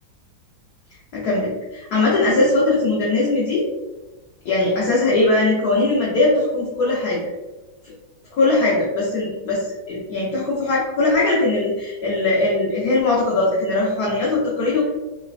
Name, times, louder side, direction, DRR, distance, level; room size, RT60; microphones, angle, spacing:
voice 1, 1.1-3.7 4.4-7.3 7.8-7.9 8.3-14.9, left 2 dB, 70° left, -5 dB, 1.0 m, -20 dB
3.2 x 2.1 x 2.4 m, 1.1 s
omnidirectional pair, 2.1 m